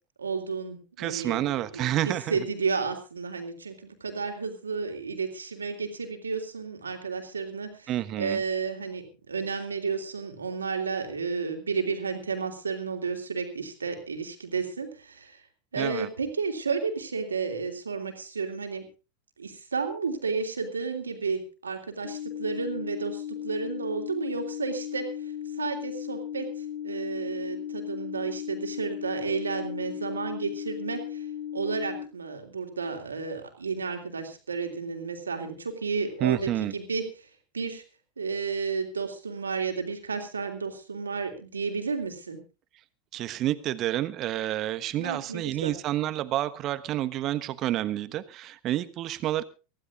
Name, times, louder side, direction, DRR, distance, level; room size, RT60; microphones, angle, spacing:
voice 1, 0.2-7.9 8.2-15.4 15.7-18.9 19.4-25.1 25.6-31.3 31.5-37.3 37.5-37.8 38.2-42.4 45.0-45.7, right 5 dB, 80° right, 6 dB, 3.3 m, -32 dB
voice 2, 1.0-2.4 7.9-8.4 15.8-16.1 36.2-36.7 43.1-49.4, right 13 dB, 40° right, 13 dB, 1.3 m, -29 dB
sound 1, 22.0-32.0, left 10 dB, 65° left, 4.2 m, -36 dB
24.0 x 15.5 x 2.5 m, 0.33 s
figure-of-eight pair, 85°, 0 cm